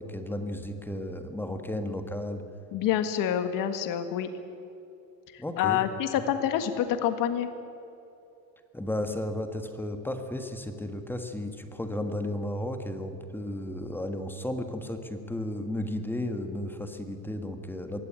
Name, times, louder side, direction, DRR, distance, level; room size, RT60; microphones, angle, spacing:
voice 1, 0.0-2.4 5.4-5.8 6.2-6.3 8.7-18.0, left 1 dB, 5° left, 6 dB, 1.6 m, -34 dB
voice 2, 2.7-4.3 5.3-7.5, left 10 dB, 50° left, 9 dB, 1.8 m, -27 dB
22.5 x 16.5 x 8.9 m, 2.8 s
cardioid pair, 145°, 42 cm